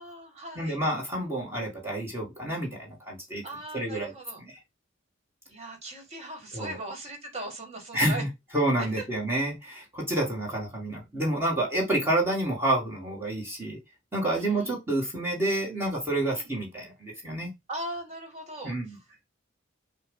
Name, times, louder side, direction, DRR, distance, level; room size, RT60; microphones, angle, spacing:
voice 1, 0.0-0.8 3.4-4.4 5.5-8.2 8.8-9.1 14.2-14.8 16.3-16.5 17.7-19.0, right 2 dB, 30° right, 1.9 m, -39 dB
voice 2, 0.6-3.4 3.7-4.1 6.5-6.8 7.9-8.3 8.5-13.8 14.1-17.5 18.6-19.0, right 1 dB, 10° right, 1.8 m, -29 dB
6.8 x 2.5 x 5.3 m
head